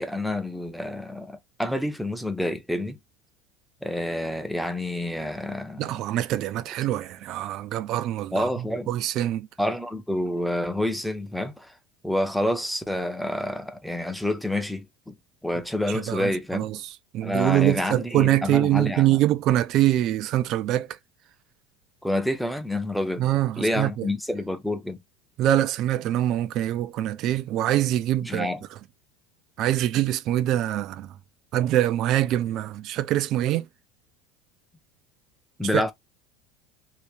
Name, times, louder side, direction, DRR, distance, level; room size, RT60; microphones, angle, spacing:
voice 1, 0.0-3.0 3.8-6.0 8.3-8.9 9.6-11.7 12.0-15.1 15.4-16.7 17.2-19.2 22.0-23.3 23.6-25.0 28.2-28.6 35.6-35.9, left 1 dB, ahead, 0.7 m, -28 dB
voice 2, 5.8-8.5 8.9-9.5 15.9-16.8 17.1-20.9 23.2-24.1 25.4-28.5 29.6-31.1 31.5-33.7 35.7-35.8, right 13 dB, 50° right, 0.4 m, -24 dB
2.8 x 2.8 x 3.4 m
hypercardioid pair, 75°, 0 cm